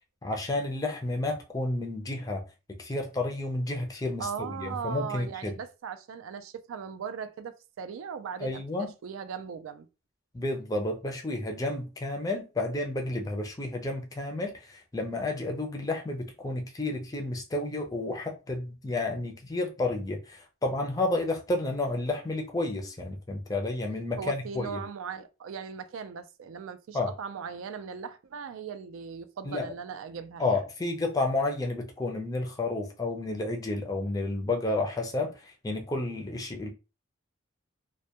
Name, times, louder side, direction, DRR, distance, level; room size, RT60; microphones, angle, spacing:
voice 1, 0.2-2.4 2.8-5.5 8.4-8.9 10.3-24.8 26.9-27.1 29.4-29.7 30.4-36.7, left 2 dB, 15° left, 0.4 m, -31 dB
voice 2, 4.2-9.9 24.2-30.6, right 6 dB, 75° right, 0.3 m, -38 dB
2.1 x 2.1 x 2.8 m
head